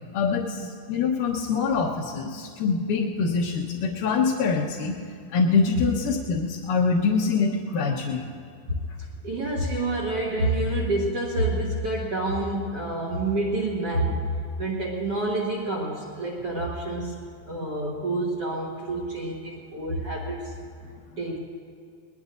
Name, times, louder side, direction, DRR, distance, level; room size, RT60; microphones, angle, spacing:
voice 1, 0.1-4.9 5.3-8.3, left 4 dB, 70° left, -5 dB, 2.3 m, -24 dB
voice 2, 9.2-14.3 14.6-17.2 17.5-20.5 21.2-21.4, right 2 dB, 60° right, -2 dB, 1.6 m, -28 dB
22.0 x 20.5 x 2.6 m, 2.2 s
omnidirectional pair, 4.7 m